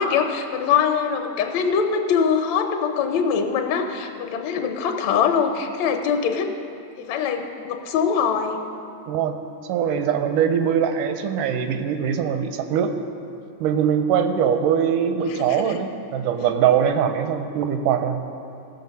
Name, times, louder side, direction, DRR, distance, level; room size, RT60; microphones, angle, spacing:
voice 1, 0.0-6.5 7.0-8.6 15.3-15.8, left 6 dB, 70° left, 5 dB, 1.8 m, -23 dB
voice 2, 9.1-9.4 9.6-12.9 13.6-18.2, right 8 dB, 85° right, 7 dB, 2.2 m, -22 dB
16.5 x 6.6 x 5.4 m, 2.6 s
omnidirectional pair, 3.6 m